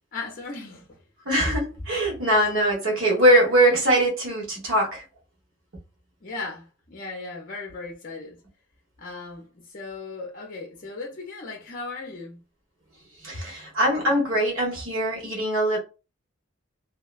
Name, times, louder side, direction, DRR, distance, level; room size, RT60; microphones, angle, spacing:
voice 1, 0.1-1.0 6.2-8.4 9.0-12.4, left 3 dB, 40° left, 0.5 m, -37 dB
voice 2, 1.2-5.0 13.2-15.8, right 1 dB, 85° right, 1.3 m, -22 dB
2.8 x 2.1 x 2.3 m
head